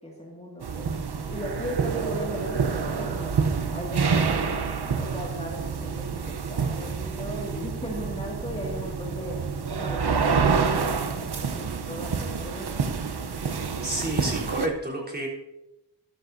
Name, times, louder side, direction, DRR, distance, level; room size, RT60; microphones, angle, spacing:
voice 1, 0.0-0.9 1.3-3.4 3.7-9.4 9.8-12.8, equal, 15° left, -2 dB, 2.1 m, -37 dB
sound 1, 0.6-14.7, right 5 dB, 65° right, 0.9 m, -28 dB
voice 2, 13.8-15.3, right 1 dB, 20° right, -3 dB, 3.6 m, -30 dB
13.0 x 12.5 x 2.7 m, 0.95 s
wide cardioid pair, 55°, 43 cm